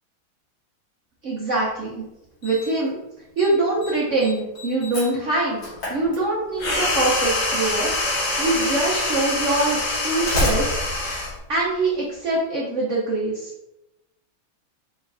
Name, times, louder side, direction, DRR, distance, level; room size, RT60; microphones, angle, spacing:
voice 1, 1.2-1.9 2.4-3.0 3.4-5.6 5.9-8.1 8.4-10.7 11.0-13.5, right 2 dB, 70° right, -5 dB, 0.7 m, -24 dB
Slam, 1.6-1.7 2.4-2.9 3.2-3.5 3.8-6.7 7.9-8.0 8.8-8.9 9.9-12.2, left 1 dB, 65° left, 2.2 m, -30 dB
sound 1, 6.6-11.4, left 2 dB, 90° left, 1.7 m, -25 dB
4.4 x 3.1 x 2.5 m, 0.91 s
omnidirectional pair, 2.2 m